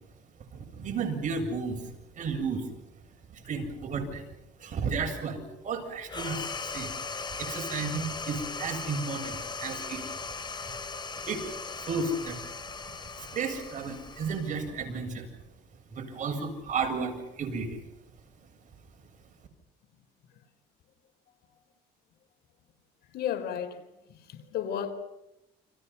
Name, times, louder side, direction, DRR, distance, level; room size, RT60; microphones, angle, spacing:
voice 1, 0.5-2.7 3.3-4.3 4.6-6.5 6.7-6.9 7.4-10.1 11.2-11.5 11.8-12.4 12.9-15.3 15.9-17.8, right 4 dB, 50° right, 7.5 m, -33 dB
sound 1, 6.1-15.0, left 4 dB, 25° left, 4.3 m, -38 dB
voice 2, 23.1-24.9, left 9 dB, 70° left, 4.2 m, -34 dB
30.0 x 26.0 x 5.8 m
cardioid pair, 110°, 17 cm